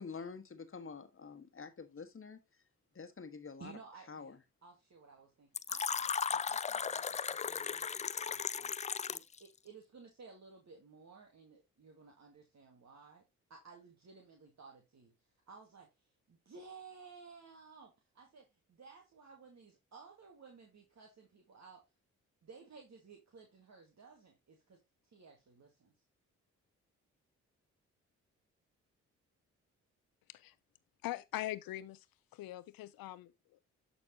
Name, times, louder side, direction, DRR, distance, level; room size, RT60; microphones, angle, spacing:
voice 1, 0.0-2.4 2.9-3.7 4.1-4.4, left 5 dB, 35° left, 1.5 m, -47 dB
voice 2, 3.6-4.3 4.6-8.7 9.1-13.2 13.5-15.1 15.5-15.9 16.3-21.8 22.4-24.8 25.1-25.9, right 5 dB, 50° right, 1.9 m, -56 dB
Fill (with liquid), 5.5-9.4, left 6 dB, 20° left, 0.3 m, -36 dB
voice 3, 31.0-32.1 32.3-33.7, left 15 dB, 70° left, 0.7 m, -42 dB
12.0 x 4.2 x 2.8 m
hypercardioid pair, 40°, 36 cm